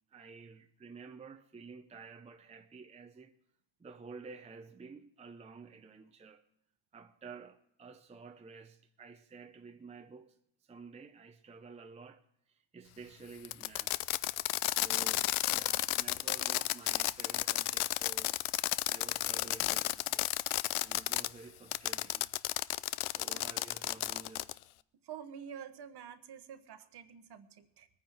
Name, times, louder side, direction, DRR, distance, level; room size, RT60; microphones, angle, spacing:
voice 1, 0.1-3.3 3.8-6.4 6.9-10.4 10.6-12.2 12.5-13.9 14.7-18.4 18.9-20.5 20.8-22.3 23.1-24.6, right 4 dB, 15° right, 0.6 m, -51 dB
Fireworks, 13.4-21.3 21.7-24.6, left 18 dB, 75° left, 0.5 m, -32 dB
voice 2, 25.0-27.9, right 8 dB, 50° right, 1.2 m, -48 dB
21.0 x 9.5 x 4.5 m
cardioid pair, 135°, 49 cm